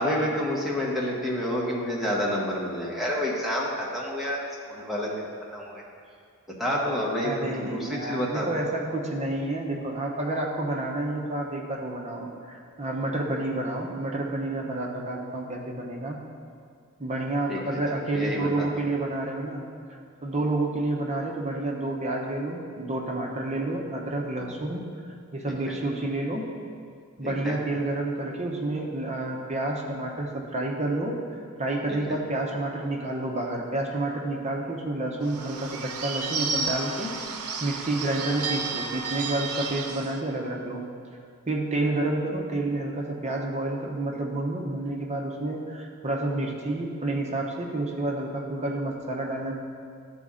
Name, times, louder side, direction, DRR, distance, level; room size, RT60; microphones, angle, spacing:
voice 1, 0.0-5.8 6.6-8.5 17.5-17.8 18.1-18.7 24.4-24.5 25.5-25.7 27.2-27.6 32.1-32.2, left 1 dB, ahead, -5 dB, 1.1 m, -29 dB
voice 2, 7.2-16.2 17.0-19.7 20.2-24.9 25.3-26.5 27.2-31.2 31.6-37.2 37.6-40.9 41.5-49.5, right 2 dB, 30° right, 0 dB, 0.8 m, -29 dB
Bird / Bell, 35.2-40.2, right 5 dB, 90° right, 0.6 m, -32 dB
12.5 x 4.2 x 3.7 m, 2.2 s
head